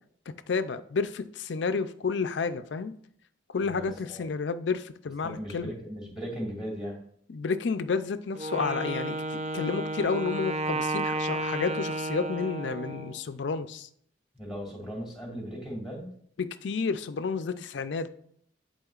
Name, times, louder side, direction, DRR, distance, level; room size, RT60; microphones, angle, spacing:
voice 1, 0.5-2.9 3.5-5.7 7.3-13.9 16.6-18.1, left 5 dB, 65° left, 11 dB, 0.4 m, -30 dB
voice 2, 3.6-4.2 5.2-7.0 14.3-16.1, equal, ahead, -2 dB, 2.5 m, -37 dB
Wind instrument woodwind instrument, 8.4-13.2, right 2 dB, 35° right, 0.3 m, -32 dB
10.5 x 4.2 x 2.4 m, 0.64 s
head